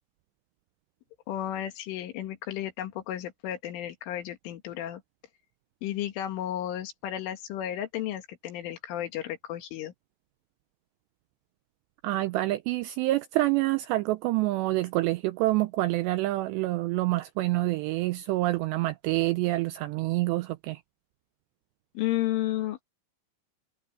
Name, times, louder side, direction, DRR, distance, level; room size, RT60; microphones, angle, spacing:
voice 1, 1.3-5.0 5.8-9.9 22.0-22.8, left 12 dB, 80° left, 4.4 m, -33 dB
voice 2, 12.0-20.8, right 18 dB, 85° right, 2.5 m, -27 dB
omnidirectional pair, 5.6 m